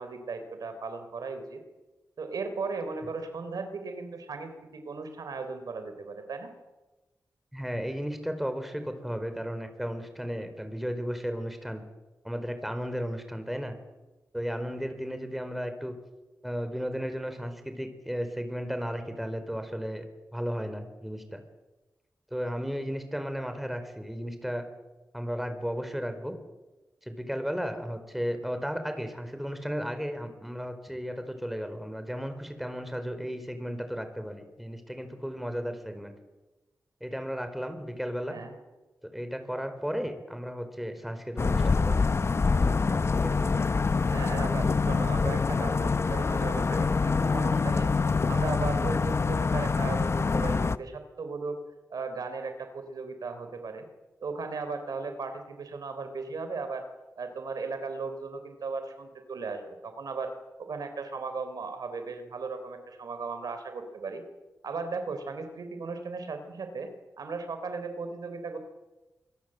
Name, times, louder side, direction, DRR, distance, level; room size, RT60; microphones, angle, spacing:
voice 1, 0.0-1.6 2.2-6.5 38.2-38.5 44.0-47.9 48.3-51.6 51.9-53.9 54.2-56.9 57.2-60.3 60.6-64.2 64.6-66.9 67.2-68.6, right 4 dB, 80° right, 8 dB, 3.8 m, -36 dB
voice 2, 7.5-11.8 12.2-13.8 14.3-16.0 16.4-20.0 20.3-21.4 22.3-24.6 25.1-26.4 27.0-36.1 37.0-38.4 39.0-42.2 43.1-43.5, equal, ahead, 8 dB, 4.5 m, -34 dB
sound 1, 41.4-50.8, left 4 dB, 45° left, 0.8 m, -25 dB
26.0 x 22.0 x 7.8 m, 1.1 s
wide cardioid pair, 80°, 6 cm